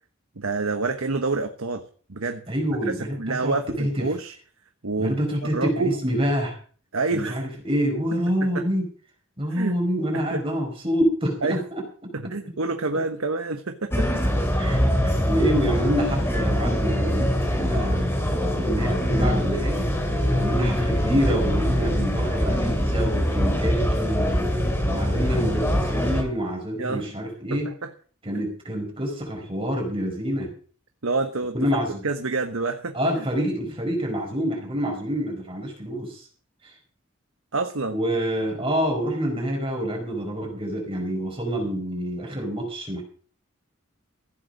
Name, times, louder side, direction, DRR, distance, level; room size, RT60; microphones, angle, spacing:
voice 1, 0.4-1.8 2.1-2.4 2.9-4.3 4.8-5.2 5.5-6.0 6.9-7.4 8.4-8.6 9.5-9.7 10.1-10.4 11.4-11.6 12.1-14.2 26.8-27.0 27.5-27.9 28.3-28.4 31.0-31.6 32.0-33.2 37.5-38.0, right 3 dB, 85° right, 6 dB, 1.2 m, -28 dB
voice 2, 2.5-4.1 5.0-6.6 7.1-8.9 9.4-11.8 14.6-14.8 15.0-19.9 20.4-24.4 24.8-27.7 28.2-30.5 31.5-32.0 32.9-36.3 36.6-36.7 37.9-43.0, equal, 25° right, 0 dB, 4.7 m, -27 dB
sound 1, 13.9-26.2, equal, 10° left, 2.7 m, -23 dB
15.5 x 8.2 x 6.4 m, 0.42 s
head